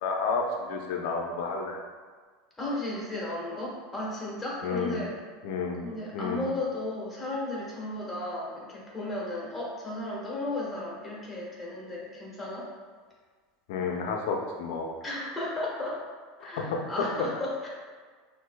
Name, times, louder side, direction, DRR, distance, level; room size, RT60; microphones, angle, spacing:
voice 1, 0.0-1.8 4.6-5.0 5.4-5.9 6.1-6.5 13.7-14.9 16.4-16.8, left 4 dB, 70° left, 2 dB, 0.6 m, -31 dB
voice 2, 2.6-5.1 5.8-12.7 15.0-16.0 16.4-17.7, left 2 dB, 15° left, -5 dB, 1.4 m, -34 dB
6.0 x 2.7 x 2.2 m, 1.5 s
supercardioid pair, 110°, 0 cm